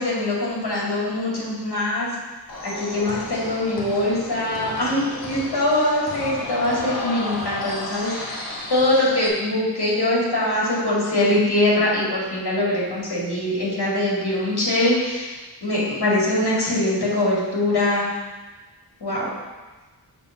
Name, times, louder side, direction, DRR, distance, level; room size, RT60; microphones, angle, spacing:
voice 1, 0.0-2.1 2.6-18.1 19.0-19.3, left 1 dB, 75° left, -5 dB, 2.3 m, -23 dB
sound 1, 2.5-9.3, left 1 dB, 55° left, 1.3 m, -32 dB
6.8 x 3.6 x 5.8 m, 1.2 s
wide cardioid pair, 90°, 39 cm